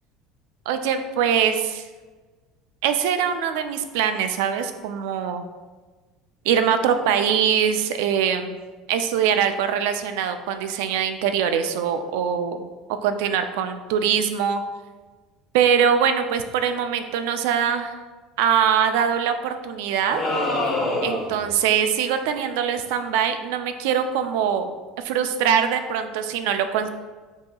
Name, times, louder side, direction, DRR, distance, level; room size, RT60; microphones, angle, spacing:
voice 1, 0.7-1.8 2.8-5.5 6.5-8.6 8.9-12.7 13.0-14.6 15.5-17.9 18.4-20.2 21.0-26.9, right 8 dB, 75° right, 8 dB, 0.4 m, -23 dB
sound 1, 20.1-21.5, left 2 dB, 20° left, 0.7 m, -25 dB
7.7 x 2.7 x 2.3 m, 1.3 s
cardioid pair, 180°, 0 cm